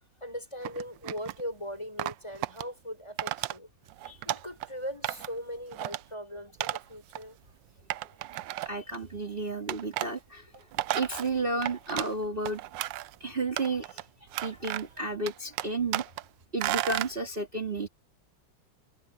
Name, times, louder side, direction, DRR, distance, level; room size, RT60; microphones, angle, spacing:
voice 1, 0.2-3.7 4.2-7.4 10.5-10.6 13.9-14.0, equal, 15° left, 6.4 m, -40 dB
sound 1, 0.6-1.4 2.0-2.6 3.2-3.6 3.9-4.7 5.0-5.4 5.7-6.0 6.6-6.8 7.1-7.2 7.9-9.0 9.7-10.1 10.5-12.1 12.4-13.1 13.6-14.0 14.3-15.0 15.3-16.2 16.6-17.1, right 15 dB, 75° right, 1.2 m, -33 dB
voice 2, 8.6-10.5 10.9-12.6 13.2-14.0 14.4-16.1 16.5-17.9, right 2 dB, 25° right, 2.7 m, -32 dB
omnidirectional pair, 2.1 m